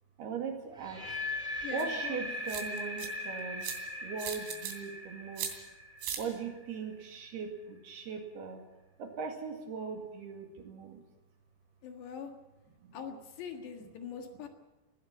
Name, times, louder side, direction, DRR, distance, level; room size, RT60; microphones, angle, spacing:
voice 1, 0.2-1.2 1.7-3.7 4.0-5.5 6.2-8.6 9.0-11.0 12.8-12.9, right 5 dB, 60° right, 3 dB, 3.8 m, -39 dB
sound 1, 0.7-6.8, left 1 dB, 35° right, 0.8 m, -39 dB
voice 2, 1.6-2.4 11.8-12.3 12.9-14.5, left 7 dB, 65° left, 5 dB, 3.6 m, -43 dB
sound 2, 1.8-1.9 2.5-3.1 3.6-3.8 4.2-4.7 5.4-5.5 6.0-6.2, right 8 dB, 80° right, 5.3 m, -37 dB
20.5 x 16.0 x 8.8 m, 1.0 s
omnidirectional pair, 5.7 m